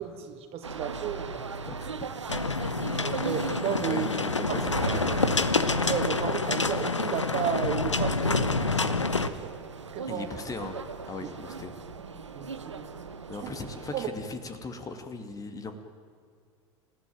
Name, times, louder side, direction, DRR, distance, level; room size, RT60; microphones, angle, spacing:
voice 1, 0.0-1.5 3.0-4.1 4.5-4.6 4.9-5.0 5.8-8.6 8.9-9.5 9.9-10.3 12.3-13.0 13.4-13.5 13.9-14.1, right 9 dB, 40° right, 6 dB, 2.6 m, -33 dB
sound 1, 0.6-14.0, right 4 dB, 80° right, 1.2 m, -38 dB
sound 2, 2.3-9.3, left 3 dB, 85° left, 1.0 m, -27 dB
voice 2, 3.9-5.5 10.1-10.8 11.1-11.7 13.3-15.8, left 3 dB, 25° left, 7 dB, 2.5 m, -38 dB
27.5 x 15.5 x 8.9 m, 2.2 s
figure-of-eight pair, 75°, 15 cm